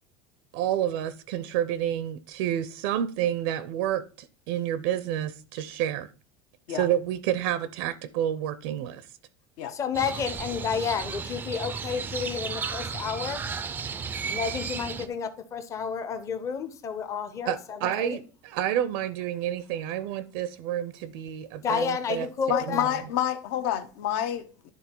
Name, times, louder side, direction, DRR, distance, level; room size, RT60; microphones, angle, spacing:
voice 1, 0.5-6.1 6.7-9.1 17.4-22.9, right 11 dB, 70° right, 0.5 m, -29 dB
voice 2, 9.7-13.4 14.3-18.2 21.6-22.9, left 6 dB, 25° left, 0.7 m, -31 dB
Crow, 9.9-15.1, right 5 dB, 15° right, 0.4 m, -34 dB
voice 3, 22.5-24.7, left 10 dB, 65° left, 0.9 m, -28 dB
10.5 x 3.6 x 4.4 m
cardioid pair, 155°, 12 cm